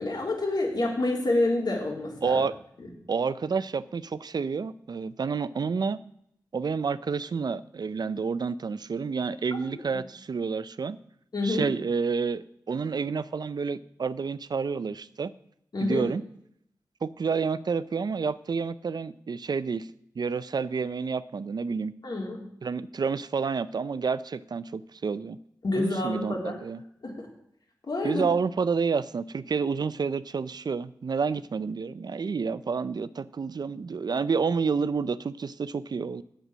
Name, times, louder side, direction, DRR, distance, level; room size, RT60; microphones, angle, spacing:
voice 1, 0.0-2.4 2.8-2.9 11.3-11.7 15.7-16.0 22.0-22.4 25.6-26.5 27.0-27.1 27.9-28.3, left 2 dB, 65° left, -1 dB, 3.4 m, -27 dB
voice 2, 2.2-2.6 3.1-6.0 6.5-11.0 11.4-15.3 15.8-16.2 17.0-19.9 20.2-21.9 22.6-25.4 25.8-26.8 28.0-36.2, right 5 dB, 65° right, 16 dB, 0.5 m, -29 dB
8.8 x 8.2 x 6.2 m, 0.73 s
cardioid pair, 50°, 8 cm